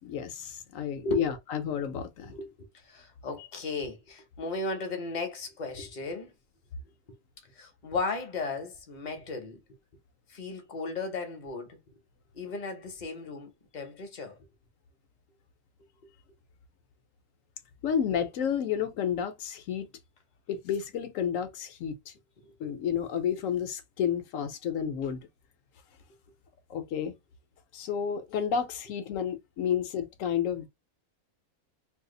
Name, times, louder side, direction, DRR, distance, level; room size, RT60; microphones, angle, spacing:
voice 1, 0.0-2.3 3.4-3.5 17.8-19.9 20.5-22.1 22.6-25.3 26.7-27.1 27.7-30.7, left 8 dB, 70° left, 0.9 m, -31 dB
voice 2, 2.9-6.3 7.6-9.6 10.3-11.8 12.3-14.4 22.6-22.7, left 3 dB, 40° left, 0.7 m, -35 dB
2.7 x 2.4 x 3.7 m
omnidirectional pair, 1.6 m